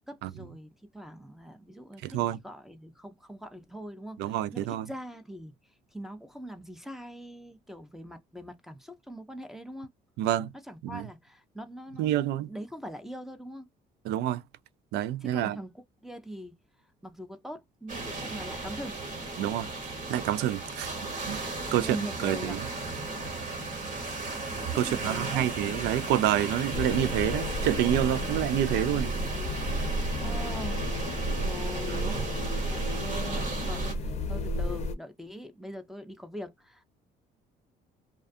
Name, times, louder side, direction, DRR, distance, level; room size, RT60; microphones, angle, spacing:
voice 1, 0.1-2.2 2.4-5.5 5.9-9.9 10.6-13.7 15.2-16.5 17.0-19.0 21.6-22.7 24.7-25.5 30.2-30.8 31.4-32.3 32.7-36.9, equal, ahead, 0.5 m, -42 dB
voice 2, 2.0-2.4 4.2-4.9 10.2-10.5 10.8-11.1 12.0-12.5 14.1-14.4 14.9-15.6 19.4-19.7 20.1-20.9 21.3-21.9 22.2-22.6 24.7-29.1 31.9-32.3, right 12 dB, 80° right, 0.4 m, -28 dB
sound 1, 17.9-33.9, right 3 dB, 50° right, 1.2 m, -36 dB
sound 2, 26.7-35.0, equal, 40° left, 0.6 m, -32 dB
2.4 x 2.2 x 2.5 m
cardioid pair, 110°, 17 cm